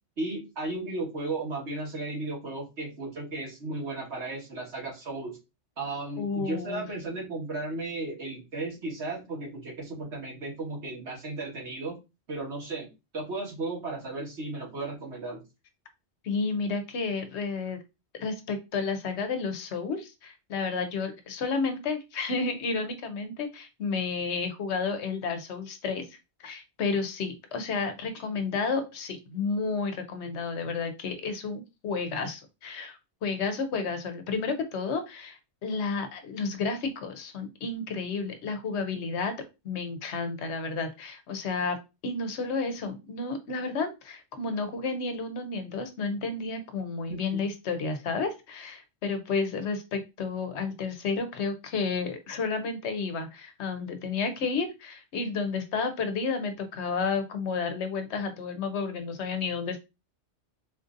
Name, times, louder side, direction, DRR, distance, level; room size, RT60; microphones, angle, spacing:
voice 1, 0.2-5.4 5.8-12.0 12.3-12.9 13.1-15.4 47.1-47.5, right 2 dB, 80° right, -3 dB, 1.8 m, -35 dB
voice 2, 6.2-7.0 16.2-17.8 18.1-39.3 39.6-41.8 42.0-59.8, left 4 dB, 80° left, 8 dB, 1.0 m, -31 dB
4.1 x 2.6 x 2.5 m, 0.26 s
omnidirectional pair, 1.1 m